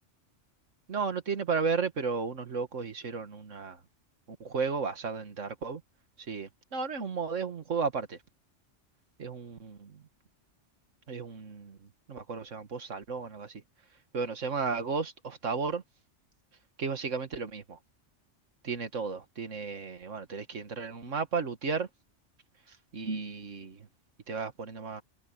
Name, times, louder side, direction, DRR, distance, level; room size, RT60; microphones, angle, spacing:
voice 1, 0.9-3.8 4.3-5.8 6.2-8.2 9.2-10.0 11.1-13.6 14.1-15.8 16.8-17.8 18.6-21.9 22.7-23.9 24.3-25.0, right 5 dB, 85° right, 2.1 m, -34 dB
omnidirectional pair, 1.3 m